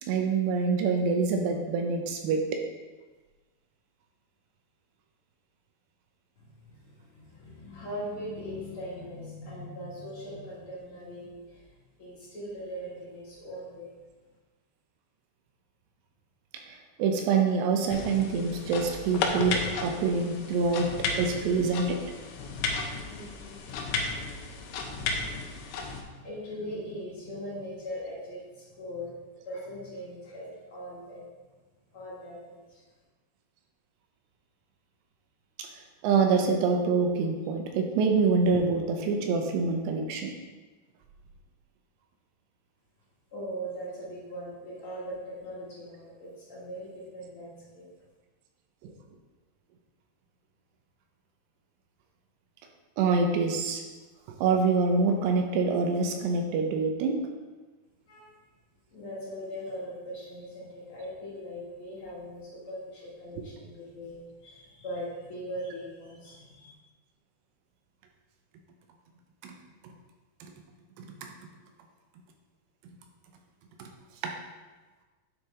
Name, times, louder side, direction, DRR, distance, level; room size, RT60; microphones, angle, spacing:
voice 1, 0.0-2.6 16.7-22.0 35.6-35.7 36.0-40.3 48.8-48.9 53.0-53.8 54.4-57.2 69.4-69.5 69.8-69.9 71.0-71.1 73.8-73.9 74.2-74.3, right 4 dB, 80° right, 3 dB, 2.9 m, -26 dB
voice 2, 6.4-11.6 12.0-13.9 23.1-23.6 26.2-29.1 29.4-31.2 31.9-32.8 43.3-47.9 58.1-58.3 58.9-66.7, equal, 50° left, -8 dB, 1.7 m, -40 dB
sound 1, 17.9-26.0, left 4 dB, 80° left, 2.4 m, -34 dB
9.4 x 4.6 x 3.7 m, 1.3 s
omnidirectional pair, 5.0 m